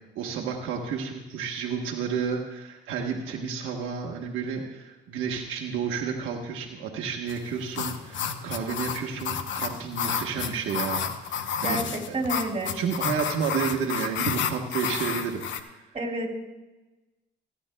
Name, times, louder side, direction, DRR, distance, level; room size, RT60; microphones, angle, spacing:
voice 1, 0.1-12.1 12.7-15.8, right 6 dB, 85° right, 0 dB, 1.2 m, -31 dB
sound 1, 7.3-15.6, left 7 dB, 70° left, 0.9 m, -31 dB
voice 2, 11.6-12.7 15.9-16.3, right 2 dB, 30° right, 1 dB, 2.8 m, -29 dB
26.5 x 9.7 x 2.2 m, 1.1 s
cardioid pair, 90°, 20 cm